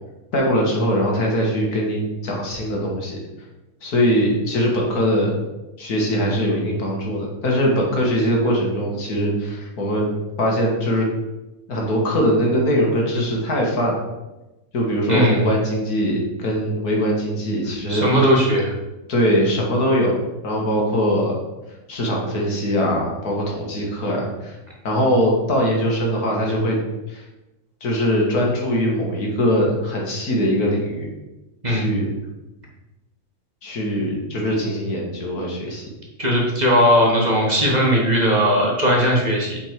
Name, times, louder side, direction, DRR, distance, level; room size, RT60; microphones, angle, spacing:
voice 1, 0.3-3.2 3.8-5.4 5.8-10.1 10.4-11.1 11.7-14.0 14.7-18.1 19.1-20.1 20.4-21.4 21.9-24.6 24.8-26.8 27.1-27.2 27.8-31.1 31.7-32.1 33.6-35.8, equal, 75° left, -1 dB, 2.1 m, -21 dB
voice 2, 15.1-15.4 17.9-18.7 31.6-32.0 36.2-39.6, equal, 30° right, -3 dB, 1.3 m, -18 dB
7.5 x 4.4 x 4.6 m, 1.0 s
omnidirectional pair, 1.6 m